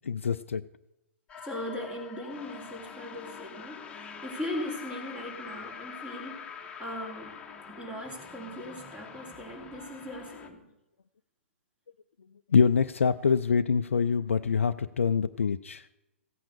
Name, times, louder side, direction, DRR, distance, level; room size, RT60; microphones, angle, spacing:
voice 1, 0.0-0.6 12.5-15.8, left 6 dB, 70° left, 11 dB, 0.4 m, -25 dB
sound 1, 1.3-10.5, left 7 dB, 15° left, 1.3 m, -44 dB
voice 2, 1.4-6.5 6.8-7.4 7.8-10.6, left 1 dB, 15° right, 2 dB, 3.2 m, -39 dB
15.5 x 8.9 x 6.7 m, 0.94 s
figure-of-eight pair, 115°, 7 cm